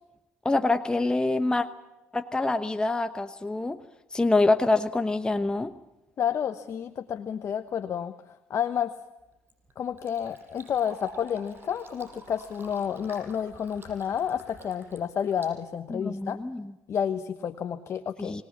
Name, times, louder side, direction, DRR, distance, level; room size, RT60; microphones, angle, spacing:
voice 1, 0.4-1.7 2.1-3.8 4.1-5.7 15.9-16.7 18.2-18.4, left 2 dB, 15° left, 8 dB, 1.1 m, -25 dB
voice 2, 6.2-8.1 8.5-8.9 9.8-16.4 16.9-18.4, left 8 dB, 50° left, 9 dB, 1.1 m, -30 dB
Fill (with liquid), 9.2-16.3, right 2 dB, 35° right, 7.3 m, -50 dB
25.5 x 19.0 x 7.3 m, 1.0 s
supercardioid pair, 65°, 6 cm